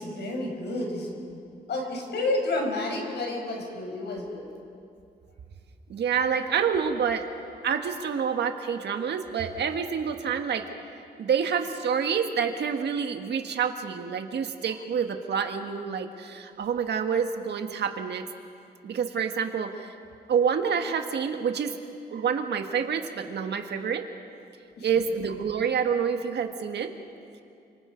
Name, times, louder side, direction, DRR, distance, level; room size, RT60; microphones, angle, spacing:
voice 1, 0.0-1.4 1.7-4.5 24.8-24.9, left 2 dB, 85° left, 1 dB, 5.4 m, -30 dB
voice 2, 5.9-7.3 7.6-10.7 11.2-18.2 18.8-19.9 20.3-21.7 22.1-24.1 24.8-26.9, right 7 dB, 85° right, 6 dB, 1.8 m, -27 dB
29.0 x 26.5 x 5.3 m, 2.5 s
wide cardioid pair, 160°, 17 cm